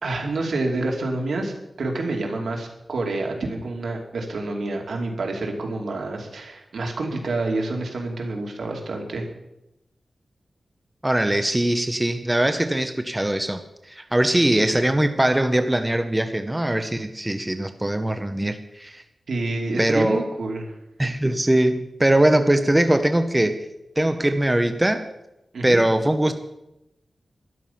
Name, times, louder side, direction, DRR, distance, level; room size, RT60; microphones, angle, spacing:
voice 1, 0.0-9.3 19.3-20.6 25.5-25.8, right 2 dB, 80° right, 1 dB, 2.6 m, -28 dB
voice 2, 11.0-13.6 13.9-19.0 19.8-20.2 21.0-23.6 24.0-25.0 25.6-26.3, right 1 dB, 10° right, 8 dB, 0.8 m, -21 dB
12.5 x 11.5 x 5.7 m, 0.90 s
wide cardioid pair, 135°, 0 cm